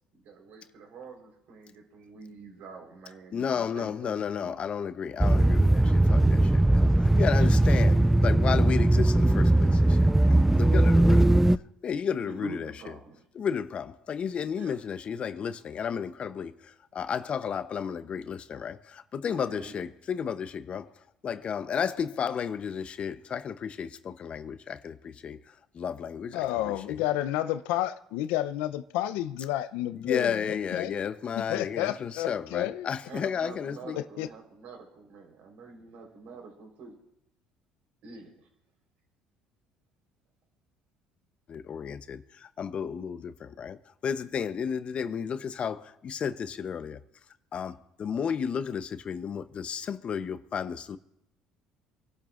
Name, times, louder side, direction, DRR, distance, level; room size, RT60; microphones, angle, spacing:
voice 1, 0.1-4.6 7.3-7.9 11.0-11.5 12.2-13.2 14.6-14.7 19.3-19.8 33.1-36.9 38.0-38.5, right 3 dB, 65° right, 4.2 m, -45 dB
voice 2, 3.3-11.3 11.8-12.7 13.3-20.9 21.2-27.0 29.9-34.0 41.5-47.0 47.5-51.0, left 7 dB, 45° left, 0.8 m, -33 dB
sound 1, 5.2-11.6, right 1 dB, 10° right, 0.4 m, -20 dB
voice 3, 26.3-31.0 31.4-32.9 34.0-34.3, left 13 dB, 80° left, 0.7 m, -31 dB
27.0 x 12.0 x 2.5 m
supercardioid pair, 70°, 3 cm